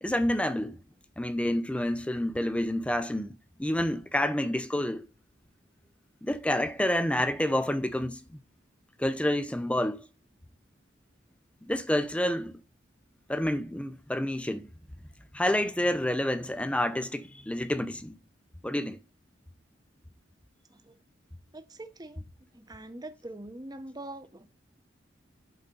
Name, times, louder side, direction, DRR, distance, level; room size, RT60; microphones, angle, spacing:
voice 1, 0.0-0.8 1.2-5.1 6.2-8.2 9.0-10.0 11.7-12.6 13.3-14.7 15.3-18.2 18.6-19.0, left 1 dB, 5° left, 0.5 m, -28 dB
voice 2, 21.5-22.2 22.5-24.5, right 1 dB, 20° right, 0.8 m, -43 dB
12.0 x 4.0 x 5.3 m
head